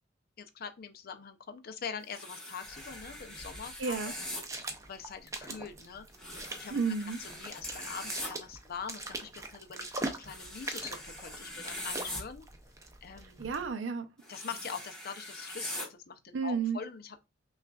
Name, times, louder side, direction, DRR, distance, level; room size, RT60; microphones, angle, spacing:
voice 1, 0.4-4.1 4.9-6.0 6.6-6.8 7.2-12.4 13.0-13.4 14.3-17.2, left 6 dB, 55° left, 0.5 m, -43 dB
sound 1, 2.1-4.4 6.2-8.3 10.3-12.2 14.2-15.9, left 1 dB, 5° left, 1.1 m, -42 dB
sound 2, 2.6-13.7, right 2 dB, 15° right, 0.5 m, -43 dB
voice 2, 3.8-4.1 6.7-7.2 13.4-14.1 16.3-16.8, right 5 dB, 70° right, 0.5 m, -32 dB
5.8 x 2.4 x 2.3 m
head